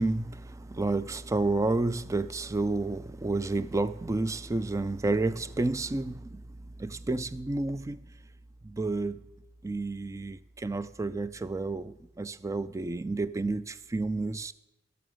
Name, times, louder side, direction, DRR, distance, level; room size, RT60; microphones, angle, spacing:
voice 1, 0.0-6.4 6.8-8.0 8.6-9.2 9.6-14.5, right 2 dB, 15° right, 0.3 m, -30 dB
12.5 x 6.8 x 6.2 m
head